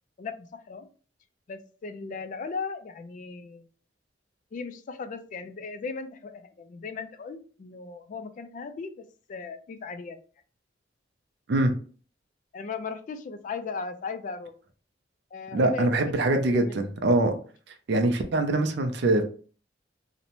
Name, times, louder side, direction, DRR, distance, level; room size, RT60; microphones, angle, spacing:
voice 1, 0.2-0.9 1.5-3.6 4.5-10.2 12.5-14.5 15.3-16.3 16.5-16.9, left 4 dB, 45° left, 10 dB, 0.3 m, -37 dB
voice 2, 15.5-17.3 17.9-19.2, right 2 dB, 65° right, 5 dB, 0.4 m, -23 dB
2.6 x 2.0 x 2.9 m, 0.41 s
head